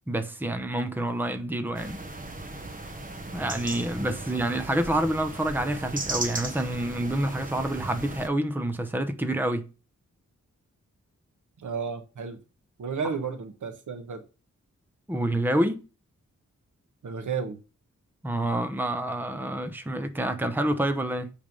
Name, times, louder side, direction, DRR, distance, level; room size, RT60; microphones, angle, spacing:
voice 1, 0.1-2.0 3.3-9.7 15.1-15.8 18.2-21.3, right 1 dB, 5° right, 0.8 m, -28 dB
sound 1, 1.7-8.3, right 2 dB, 30° right, 1.1 m, -36 dB
voice 2, 11.6-12.4 12.8-14.3 17.0-17.6, right 5 dB, 80° right, 1.3 m, -33 dB
8.5 x 3.5 x 5.3 m
wide cardioid pair, 150°, 30 cm